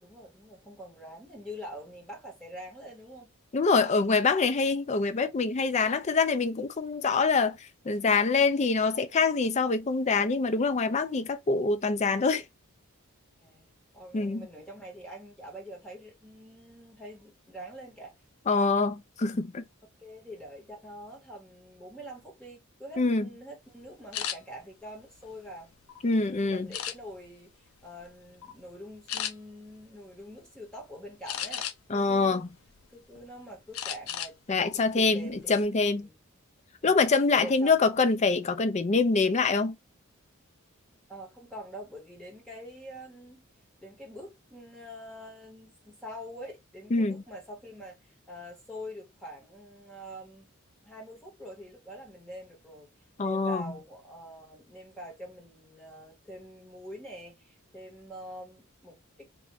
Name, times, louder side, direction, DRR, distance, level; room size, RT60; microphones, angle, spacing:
voice 1, 0.0-3.3 13.4-13.7 13.9-18.1 20.0-25.7 26.1-31.7 31.9-32.5 32.9-36.1 36.8-37.0 37.4-37.8 41.1-43.4 43.8-50.5 50.8-52.9 53.2-59.3, equal, 5° left, 1.3 m, -45 dB
voice 2, 3.5-7.6 7.9-12.4 14.1-14.4 18.5-19.6 23.0-23.3 26.0-26.7 31.9-32.5 34.5-36.1 36.8-39.8 46.9-47.2 53.2-53.7, left 4 dB, 30° left, 0.4 m, -25 dB
sound 1, 24.1-24.4 25.0-26.0 26.7-27.3 27.8-28.1 28.4-28.6 29.1-29.3 31.3-32.0 32.5-33.2 33.7-34.4 34.7-34.9 35.3-35.7, left 9 dB, 80° left, 0.6 m, -35 dB
3.0 x 2.5 x 3.2 m
head